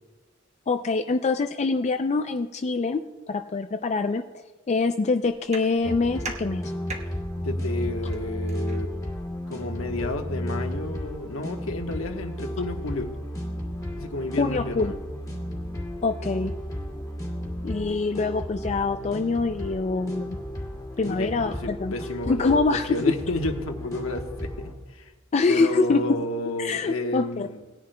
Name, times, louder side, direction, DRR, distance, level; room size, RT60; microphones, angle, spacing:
voice 1, 0.7-3.0 3.3-4.2 4.7-6.7 14.4-14.9 16.0-16.5 17.6-20.4 21.0-21.9 22.3-23.0 25.3-26.2 26.6-27.5, left 4 dB, 35° left, 7 dB, 0.4 m, -25 dB
sound 1, 5.2-11.4, right 3 dB, 35° right, 1.1 m, -44 dB
sound 2, 5.8-24.7, equal, 15° left, 2.2 m, -33 dB
voice 2, 7.4-8.9 9.5-13.1 14.0-15.0 17.9-18.0 21.1-25.1 25.5-27.7, left 2 dB, 85° left, 5 dB, 1.2 m, -31 dB
19.0 x 10.5 x 2.2 m, 1.2 s
head